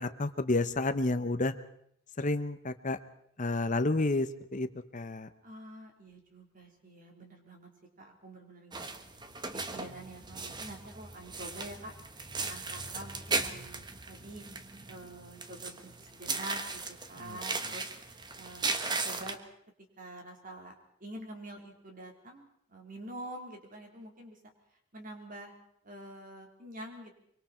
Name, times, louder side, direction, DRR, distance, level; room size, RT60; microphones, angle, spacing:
voice 1, 0.0-1.5 2.2-3.0 3.4-4.7 4.9-5.3 17.2-17.4, left 2 dB, 40° left, 10 dB, 0.9 m, -30 dB
voice 2, 5.4-7.7 8.0-8.9 9.5-11.9 12.4-14.5 14.9-17.9 18.3-18.7 19.0-19.4 20.0-20.8 21.0-24.4 24.9-25.5 25.8-27.1, right 1 dB, 45° right, 2 dB, 4.0 m, -46 dB
sound 1, 8.7-19.4, right 3 dB, 20° right, 1.3 m, -37 dB
24.5 x 24.0 x 4.4 m, 0.69 s
head